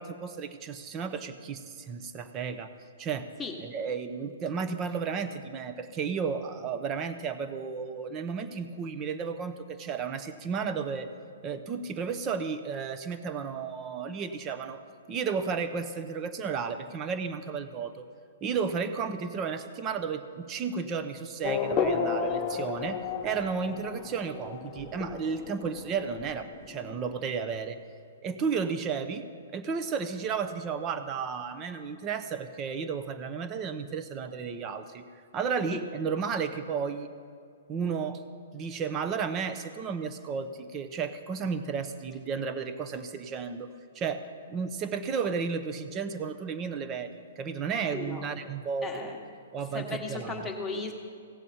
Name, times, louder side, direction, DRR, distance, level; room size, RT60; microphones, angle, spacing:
voice 1, 0.0-2.7 3.0-3.3 3.6-11.1 11.4-14.8 15.1-18.1 18.4-27.8 28.2-29.3 29.5-35.1 35.3-37.1 37.7-38.2 38.5-49.1 49.5-50.4, right 6 dB, 25° right, 10 dB, 0.7 m, -33 dB
Race car auto racing / Accelerating revving vroom, 21.4-27.5, left 5 dB, 25° left, 0.8 m, -33 dB
voice 2, 47.9-48.2 48.8-49.2 49.7-50.9, left 3 dB, 5° left, -1 dB, 1.3 m, -36 dB
16.5 x 7.3 x 4.2 m, 2.2 s
hypercardioid pair, 145°, 0 cm